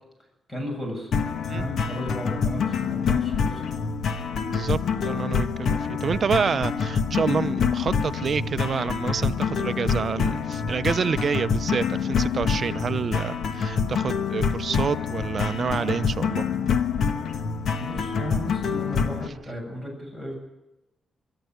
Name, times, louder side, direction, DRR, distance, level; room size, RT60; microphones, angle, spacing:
voice 1, 0.5-1.1 1.5-3.7 17.8-20.3, equal, 15° left, 2 dB, 7.5 m, -34 dB
sound 1, 1.1-19.3, left 6 dB, 65° left, 1.4 m, -26 dB
voice 2, 4.5-16.5, right 6 dB, 45° right, 14 dB, 0.7 m, -28 dB
23.5 x 13.5 x 9.4 m, 0.95 s
cardioid pair, 130°, 0 cm